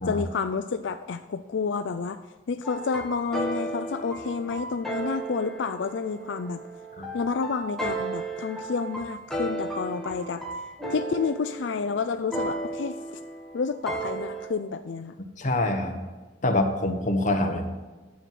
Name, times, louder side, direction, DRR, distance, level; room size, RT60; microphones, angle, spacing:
voice 1, 0.1-2.2 2.5-6.6 7.1-10.4 10.9-13.0 13.5-15.2, left 5 dB, 85° left, 9 dB, 0.4 m, -30 dB
sound 1, 2.6-14.5, right 2 dB, 5° left, 1.6 m, -34 dB
voice 2, 15.4-16.0 16.4-17.8, left 1 dB, 45° left, 4 dB, 1.3 m, -25 dB
10.0 x 7.8 x 5.8 m, 1.3 s
head